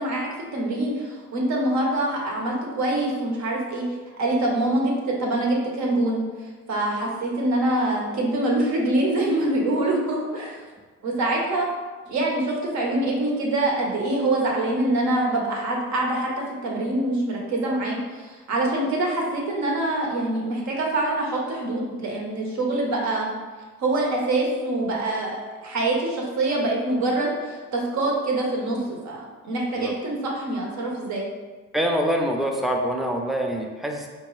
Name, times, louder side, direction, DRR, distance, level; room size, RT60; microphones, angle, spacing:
voice 1, 0.0-3.8 4.2-10.6 11.0-11.7 12.1-16.3 16.6-23.3 23.8-31.3, right 2 dB, 65° right, -1 dB, 0.9 m, -25 dB
voice 2, 31.7-34.1, equal, ahead, 1 dB, 0.4 m, -25 dB
3.8 x 2.2 x 3.0 m, 1.4 s
cardioid pair, 90°, 30 cm